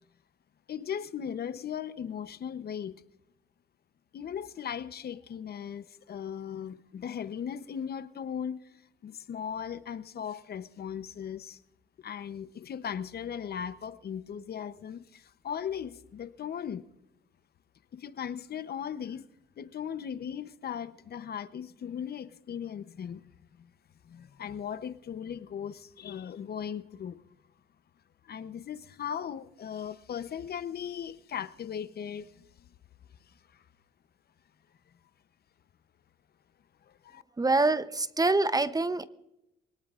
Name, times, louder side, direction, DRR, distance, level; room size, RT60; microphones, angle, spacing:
voice 1, 0.7-3.0 4.1-11.6 12.0-16.9 17.9-19.3 19.6-23.2 23.6-23.7 24.0-27.2 28.2-32.7 33.2-33.6 36.8-37.2, left 8 dB, 50° left, 0.8 m, -38 dB
voice 2, 37.4-39.1, right 3 dB, 20° right, 0.7 m, -25 dB
24.0 x 18.0 x 2.5 m
cardioid pair, 90°, 20 cm